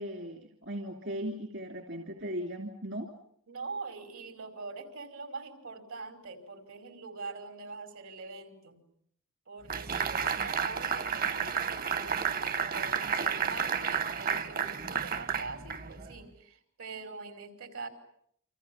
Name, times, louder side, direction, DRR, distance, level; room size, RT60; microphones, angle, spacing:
voice 1, 0.0-3.1, equal, 60° right, 4 dB, 2.6 m, -37 dB
voice 2, 3.5-8.8 9.5-17.9, right 3 dB, 80° right, 8 dB, 5.2 m, -43 dB
sound 1, 9.7-16.2, right 6 dB, 45° right, 1.1 m, -31 dB
29.5 x 26.0 x 7.2 m, 0.66 s
head